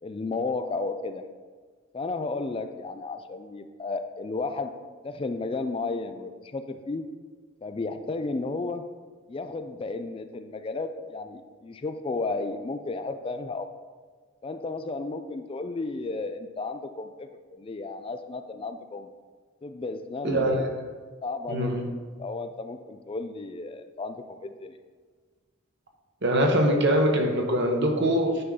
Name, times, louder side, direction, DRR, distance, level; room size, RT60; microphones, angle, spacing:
voice 1, 0.0-1.2 1.9-4.7 5.0-7.1 7.6-8.9 9.3-13.7 14.4-19.1 19.6-20.7 21.2-24.8, left 3 dB, 25° left, 8 dB, 0.3 m, -33 dB
voice 2, 20.2-20.6 21.5-21.9 26.2-28.4, equal, 60° right, 2 dB, 1.2 m, -23 dB
9.4 x 5.6 x 3.7 m, 1.5 s
head